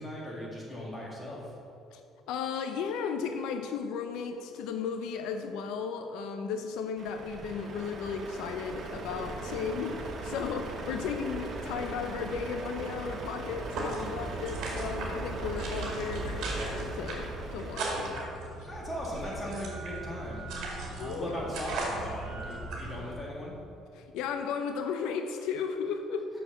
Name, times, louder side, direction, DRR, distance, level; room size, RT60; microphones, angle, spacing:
voice 1, 0.0-1.6 18.6-23.6 26.3-26.4, equal, 15° left, -4 dB, 1.9 m, -38 dB
voice 2, 2.3-18.2 21.0-21.3 23.9-26.3, left 6 dB, 85° left, 6 dB, 0.5 m, -35 dB
Truck, 7.0-18.2, right 2 dB, 40° right, 0.9 m, -38 dB
sound 1, 13.7-23.1, right 2 dB, 65° right, 2.2 m, -38 dB
6.5 x 6.3 x 6.6 m, 2.6 s
cardioid pair, 145°, 0 cm